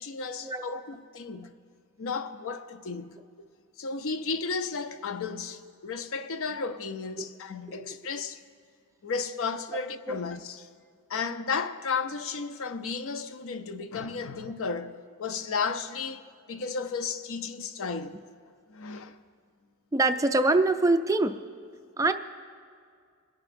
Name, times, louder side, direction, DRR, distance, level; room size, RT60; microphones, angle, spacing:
voice 1, 0.0-1.5 2.0-3.2 3.8-8.4 9.0-10.7 11.1-18.2 18.7-19.2, left 5 dB, 65° left, 0.6 m, -33 dB
voice 2, 19.9-21.3 22.0-22.1, right 2 dB, 15° right, 0.4 m, -24 dB
27.5 x 10.5 x 2.6 m
head